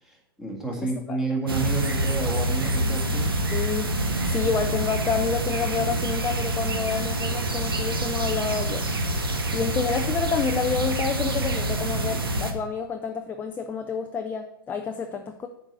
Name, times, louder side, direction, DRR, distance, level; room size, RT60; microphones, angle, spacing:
voice 1, 0.0-3.3 9.5-9.7, right 3 dB, 5° right, -1 dB, 1.8 m, -30 dB
sound 1, 1.5-12.5, right 1 dB, 80° right, 1.2 m, -26 dB
voice 2, 3.5-3.9 4.3-8.9 9.5-15.5, left 5 dB, 15° left, 5 dB, 0.5 m, -29 dB
7.2 x 4.7 x 6.6 m, 0.85 s
figure-of-eight pair, 115°, 12 cm